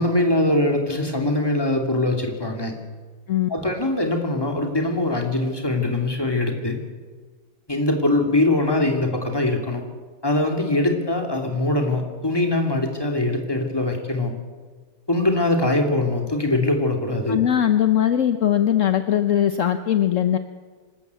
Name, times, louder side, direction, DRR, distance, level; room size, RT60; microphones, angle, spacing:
voice 1, 0.0-2.8 3.5-6.8 7.7-9.8 10.2-14.3 15.1-17.4, left 2 dB, 15° left, 2 dB, 2.8 m, -22 dB
voice 2, 17.3-20.4, left 10 dB, 60° left, 9 dB, 1.2 m, -20 dB
25.5 x 13.5 x 8.3 m, 1.4 s
omnidirectional pair, 1.5 m